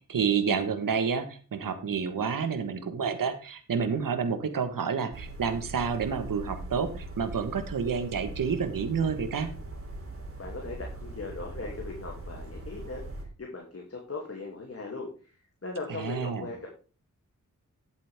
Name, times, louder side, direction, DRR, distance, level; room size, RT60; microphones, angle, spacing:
voice 1, 0.1-9.5 15.9-16.5, right 6 dB, 80° right, 9 dB, 1.5 m, -29 dB
sound 1, 5.1-13.3, right 1 dB, 40° right, 3.5 m, -41 dB
voice 2, 10.4-15.3 15.6-16.7, left 3 dB, 45° left, 0 dB, 2.7 m, -39 dB
11.0 x 8.1 x 3.6 m, 0.36 s
cardioid pair, 60°, 33 cm